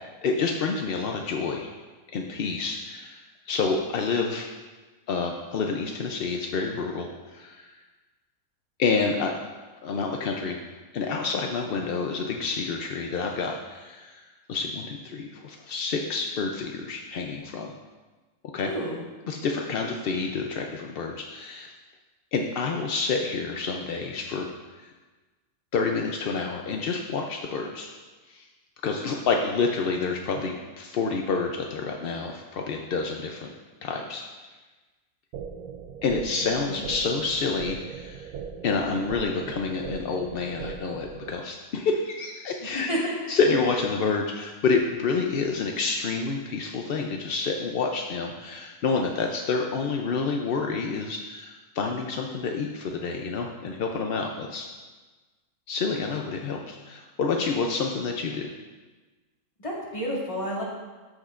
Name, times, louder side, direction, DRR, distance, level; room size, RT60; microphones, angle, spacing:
voice 1, 0.2-1.7 2.1-4.5 5.1-7.7 8.8-9.3 9.8-10.6 10.9-14.2 14.5-17.7 18.5-18.7 19.3-21.7 22.3-24.5 24.8-24.9 25.7-27.9 28.3-28.4 28.8-33.5 33.8-34.2 36.0-38.3 38.6-42.9 43.3-54.7 55.7-58.5, left 4 dB, 65° left, 2 dB, 0.6 m, -28 dB
voice 2, 18.6-19.0 36.7-36.9 42.6-43.4 59.6-60.6, equal, 20° left, -5 dB, 1.9 m, -30 dB
sound 1, 35.3-41.3, right 7 dB, 90° right, 1.1 m, -39 dB
13.5 x 6.3 x 2.5 m, 1.3 s
omnidirectional pair, 1.6 m